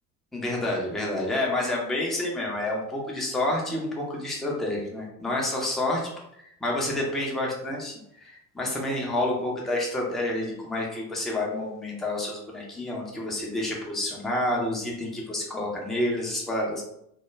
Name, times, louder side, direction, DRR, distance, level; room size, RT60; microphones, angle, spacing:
voice 1, 0.3-6.1 6.6-7.9 8.2-16.8, left 1 dB, ahead, -2 dB, 0.3 m, -29 dB
2.2 x 2.1 x 3.0 m, 0.78 s
figure-of-eight pair, 55°, 45 cm